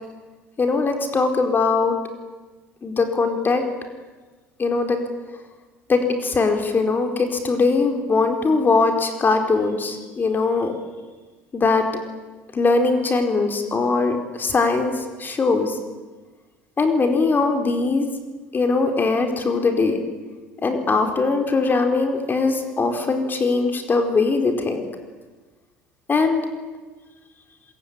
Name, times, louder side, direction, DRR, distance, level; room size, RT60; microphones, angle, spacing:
voice 1, 0.6-2.0 2.8-3.6 4.6-5.0 5.9-10.8 11.5-11.8 12.5-15.8 16.8-18.1 18.5-20.0 20.6-24.8 26.1-26.4, left 3 dB, 30° left, 5 dB, 4.6 m, -21 dB
26.5 x 22.0 x 9.9 m, 1.3 s
hypercardioid pair, 70°, 6 cm